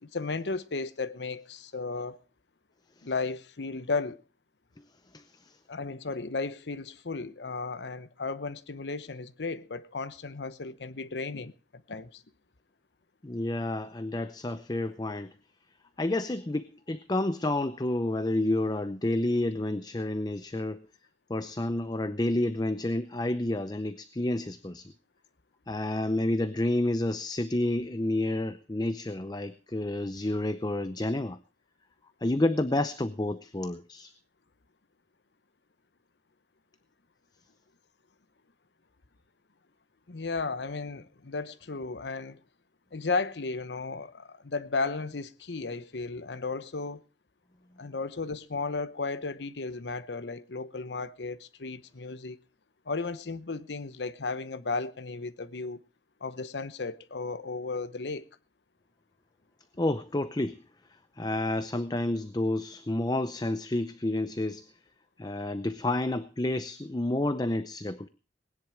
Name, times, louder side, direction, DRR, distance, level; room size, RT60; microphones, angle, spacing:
voice 1, 0.0-2.2 3.0-4.2 5.7-12.2 40.1-42.4 42.9-47.0 47.8-52.4 52.9-55.8 56.2-58.3, left 3 dB, 80° left, 0.9 m, -34 dB
voice 2, 5.1-5.6 13.2-15.3 16.0-20.9 21.3-24.9 25.7-31.4 32.2-34.1 59.8-60.6 61.2-64.7 65.2-68.1, left 1 dB, 25° left, 0.6 m, -30 dB
19.5 x 10.5 x 4.8 m
head